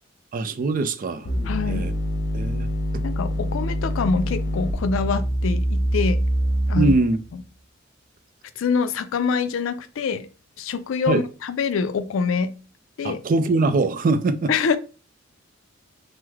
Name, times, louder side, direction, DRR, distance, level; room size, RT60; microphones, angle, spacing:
voice 1, 0.3-1.3 1.7-1.9 2.3-2.7 2.9-3.0 6.8-7.2 11.1-11.2 13.0-14.5, right 3 dB, 45° right, 0.4 m, -22 dB
sound 1, 1.3-7.2, equal, 50° left, 0.9 m, -25 dB
voice 2, 1.5-1.9 3.0-6.2 6.7-6.9 7.3-7.4 8.6-10.3 10.6-12.5 13.0-13.2 14.5-14.8, left 5 dB, 70° left, 0.4 m, -25 dB
3.2 x 2.0 x 3.4 m
head